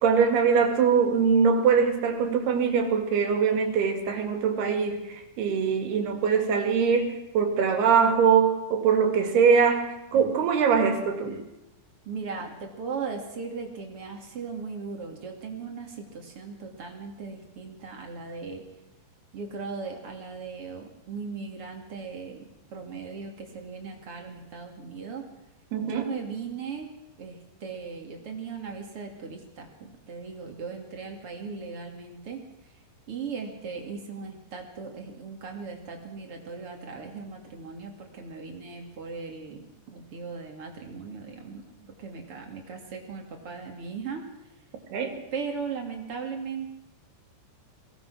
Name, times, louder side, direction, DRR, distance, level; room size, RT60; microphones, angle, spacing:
voice 1, 0.0-11.3 25.7-26.1 44.9-45.2, right 6 dB, 70° right, 5 dB, 4.2 m, -22 dB
voice 2, 12.1-18.6 19.3-25.2 25.8-26.9 27.2-32.4 33.1-44.2 45.3-46.7, right 5 dB, 40° right, 3 dB, 2.9 m, -38 dB
23.0 x 18.0 x 6.2 m, 0.92 s
omnidirectional pair, 4.9 m